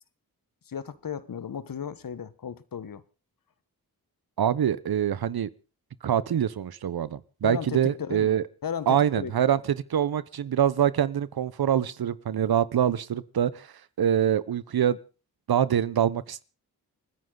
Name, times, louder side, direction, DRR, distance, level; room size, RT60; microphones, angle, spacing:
voice 1, 0.7-3.0 7.4-9.6, left 7 dB, 65° left, 1.3 m, -35 dB
voice 2, 4.4-5.5 6.0-8.4 8.9-9.6 9.9-13.7 14.0-15.0 15.5-16.4, right 9 dB, 75° right, 1.0 m, -25 dB
28.0 x 9.8 x 3.9 m
cardioid pair, 50°, 37 cm